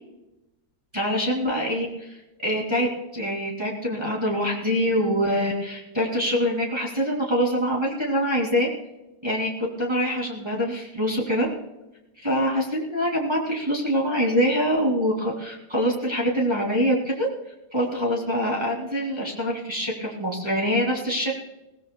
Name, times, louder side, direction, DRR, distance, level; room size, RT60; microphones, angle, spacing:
voice 1, 0.9-2.2 2.4-2.9 3.1-8.7 9.2-9.5 9.8-11.5 12.2-17.3 17.7-21.3, equal, 15° right, -2 dB, 2.4 m, -24 dB
20.5 x 17.5 x 2.2 m, 0.98 s
omnidirectional pair, 1.9 m